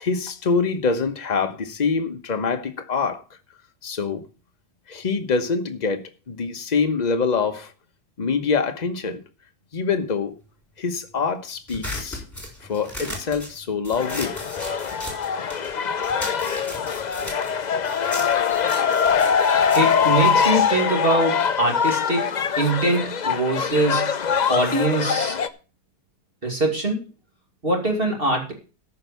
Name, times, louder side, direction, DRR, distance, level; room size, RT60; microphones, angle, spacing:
voice 1, 0.0-3.2 3.8-4.2 4.9-7.7 8.2-9.2 9.7-10.3 10.8-12.2 12.6-14.4, left 5 dB, 30° left, 1.0 m, -25 dB
sound 1, 11.7-15.7 16.0-20.8, left 1 dB, 10° left, 4.1 m, -36 dB
sound 2, 14.0-25.5, left 7 dB, 75° left, 0.4 m, -23 dB
voice 2, 19.7-24.1 24.5-25.4 26.4-27.0 27.6-28.5, right 2 dB, 35° right, 2.7 m, -23 dB
13.5 x 5.6 x 6.9 m
omnidirectional pair, 1.8 m